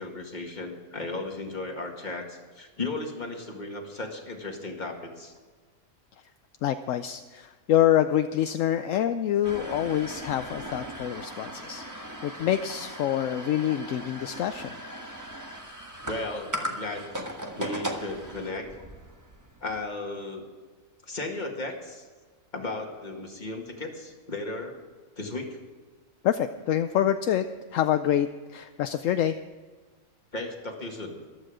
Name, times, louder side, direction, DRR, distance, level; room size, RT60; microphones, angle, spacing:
voice 1, 0.0-5.3 16.1-17.2 17.5-18.7 19.6-20.5 21.0-22.1 22.5-24.7 25.2-25.6 30.3-31.2, left 2 dB, 30° left, 2 dB, 2.0 m, -35 dB
voice 2, 6.6-14.8 26.2-27.5 27.7-29.4, left 11 dB, 70° left, 9 dB, 0.9 m, -26 dB
sound 1, 9.4-19.8, equal, 15° right, 1.3 m, -38 dB
14.5 x 12.5 x 4.9 m, 1.4 s
omnidirectional pair, 1.5 m